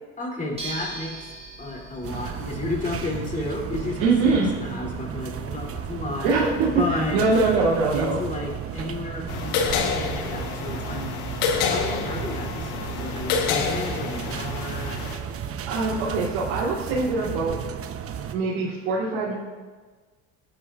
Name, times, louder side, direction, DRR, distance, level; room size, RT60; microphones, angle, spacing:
voice 1, 0.2-1.3 1.6-6.3 6.8-7.2 7.9-11.1 11.6-15.0, left 2 dB, 25° left, -1 dB, 3.3 m, -32 dB
sound 1, 0.5-5.9, right 3 dB, 20° right, 3.1 m, -41 dB
sound 2, 2.0-18.3, right 8 dB, 45° right, 1.0 m, -34 dB
voice 2, 4.0-4.5 6.2-6.8 7.1-8.2 15.7-17.6 18.3-19.3, right 3 dB, 85° right, -9 dB, 3.4 m, -23 dB
sound 3, 9.3-15.2, left 6 dB, 75° left, 1.4 m, -28 dB
17.5 x 10.0 x 2.6 m, 1.4 s
supercardioid pair, 90°, 33 cm